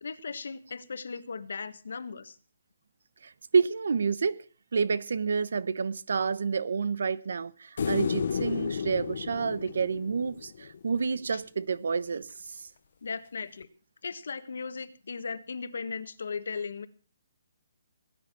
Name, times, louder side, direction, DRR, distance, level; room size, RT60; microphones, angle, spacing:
voice 1, 0.0-2.4 11.3-11.4 13.0-13.7 14.0-16.9, left 5 dB, 70° left, 1.5 m, -37 dB
voice 2, 3.2-4.4 4.7-12.6, right 5 dB, 65° right, 0.9 m, -29 dB
sound 1, 7.8-11.0 13.6-13.7, left 6 dB, 50° left, 0.9 m, -32 dB
19.0 x 9.9 x 6.1 m
hypercardioid pair, 180°, 0 cm